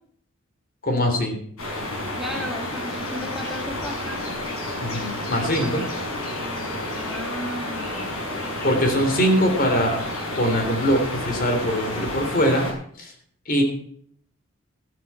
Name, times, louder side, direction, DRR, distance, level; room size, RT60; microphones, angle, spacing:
voice 1, 0.8-1.4 4.8-5.8 8.6-10.0 10.4-12.7 13.0-13.1 13.5-13.6, equal, 40° left, 4 dB, 3.4 m, -22 dB
sound 1, 1.6-12.7, left 1 dB, 80° left, 6.8 m, -30 dB
voice 2, 2.2-4.2 5.6-5.9 6.9-9.1 11.7-12.1, equal, ahead, 0 dB, 1.9 m, -36 dB
13.5 x 13.5 x 4.3 m, 0.62 s
head